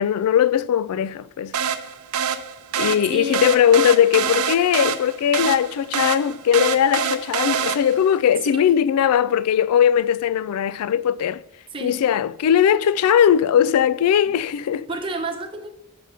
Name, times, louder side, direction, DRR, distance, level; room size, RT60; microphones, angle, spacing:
voice 1, 0.0-1.5 2.8-11.4 11.8-14.9, left 9 dB, 85° left, 0.3 m, -19 dB
sound 1, 1.5-8.1, right 7 dB, 85° right, 0.6 m, -26 dB
voice 2, 3.1-3.5 8.5-8.6 11.7-12.0 14.9-15.7, right 2 dB, 25° right, 0.9 m, -30 dB
6.6 x 5.0 x 5.5 m
head